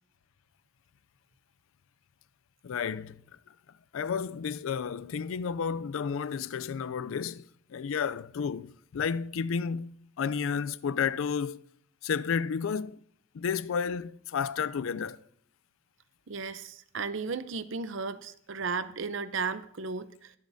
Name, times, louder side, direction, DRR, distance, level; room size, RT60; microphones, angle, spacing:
voice 1, 2.6-3.2 3.9-11.6 12.0-13.0 13.3-15.2, left 6 dB, 70° left, 0.4 m, -32 dB
voice 2, 16.3-20.3, right 4 dB, 60° right, 0.6 m, -35 dB
22.0 x 8.2 x 2.7 m
head